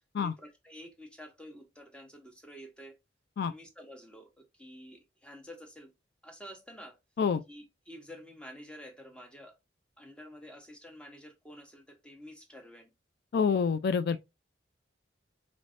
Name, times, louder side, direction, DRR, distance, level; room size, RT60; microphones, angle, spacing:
voice 1, 0.2-3.0 3.4-5.9 6.2-7.0 7.5-9.6 10.0-12.9, equal, 5° left, 0.9 m, -49 dB
voice 2, 13.3-14.2, left 6 dB, 60° left, 0.3 m, -27 dB
4.1 x 3.2 x 2.5 m
head